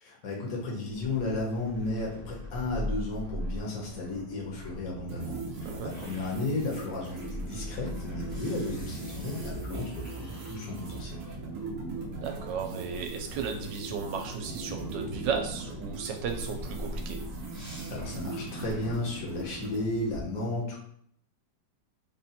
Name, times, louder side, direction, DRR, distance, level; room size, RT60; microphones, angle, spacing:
voice 1, 0.0-11.2 17.9-20.8, left 2 dB, 55° left, -2 dB, 1.4 m, -34 dB
sound 1, 0.8-20.2, equal, 10° right, 0.7 m, -42 dB
sound 2, 5.1-19.9, right 3 dB, 60° right, 0.8 m, -40 dB
voice 2, 12.1-17.2, right 6 dB, 90° right, 4 dB, 1.3 m, -34 dB
3.7 x 2.2 x 4.2 m, 0.66 s
omnidirectional pair, 1.9 m